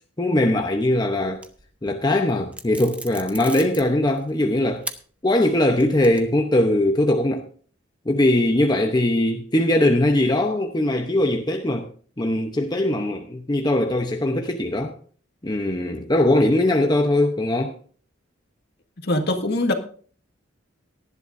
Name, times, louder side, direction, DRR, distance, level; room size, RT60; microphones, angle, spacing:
voice 1, 0.2-1.4 1.8-4.8 5.2-7.5 8.1-11.9 12.2-14.9 15.4-17.7, left 1 dB, 20° left, 0.8 m, -21 dB
sound 1, 1.3-1.9 2.5-4.4 4.8-5.0 5.5-6.5, right 2 dB, 5° right, 0.9 m, -37 dB
voice 2, 19.0-19.7, left 1 dB, 55° left, 1.9 m, -22 dB
18.0 x 11.0 x 2.6 m
head